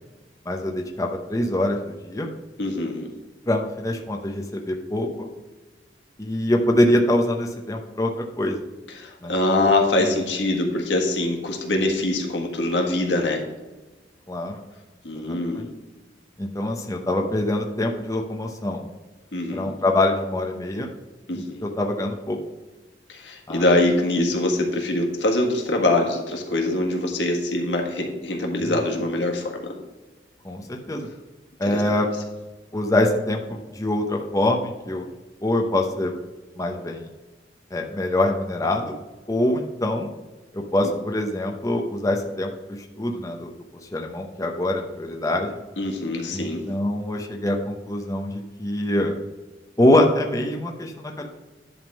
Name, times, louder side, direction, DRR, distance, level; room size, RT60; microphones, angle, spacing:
voice 1, 0.5-2.3 3.5-5.3 6.2-8.1 8.4-8.6 9.2-9.6 10.0-10.2 14.3-14.6 15.1-15.7 16.4-18.9 19.5-20.9 21.3-22.4 23.5-23.9 28.6-28.8 30.4-31.1 31.6-32.1 32.7-35.1 35.4-36.1 36.6-37.1 37.7-39.0 39.3-40.1 40.5-42.5 43.0-43.5 43.9-45.5 46.3-49.1 49.8-51.3, left 1 dB, 20° left, 1 dB, 0.8 m, -24 dB
voice 2, 2.6-3.1 8.9-13.4 15.0-15.7 19.3-19.7 21.3-21.7 23.1-29.7 31.7-31.8 40.8-40.9 45.8-46.6, left 2 dB, 85° left, 1 dB, 1.7 m, -23 dB
10.5 x 3.7 x 6.2 m, 1.2 s
head